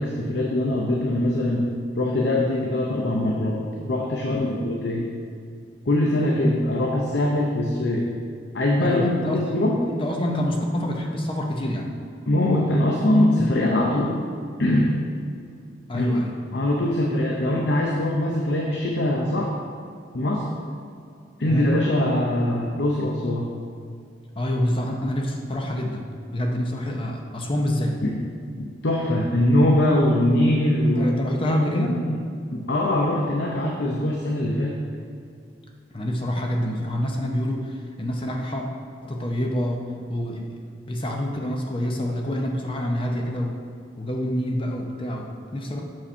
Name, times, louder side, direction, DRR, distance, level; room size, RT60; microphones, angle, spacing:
voice 1, 0.0-1.7 2.0-5.1 5.9-8.1 8.5-9.8 12.3-14.2 14.6-15.0 15.9-16.1 16.5-19.5 20.1-20.5 21.4-23.5 28.0-28.3 28.6-31.1 31.4-32.2 32.5-34.7, left 1 dB, 65° left, -1 dB, 0.7 m, -22 dB
voice 2, 4.3-4.6 8.8-11.9 15.9-16.3 21.5-21.8 24.4-28.0 31.0-32.0 35.9-38.7 39.0-39.8 40.1-40.6 40.9-43.6 44.0-45.8, equal, 25° left, 1 dB, 0.6 m, -27 dB
7.6 x 4.3 x 5.5 m, 2.4 s
head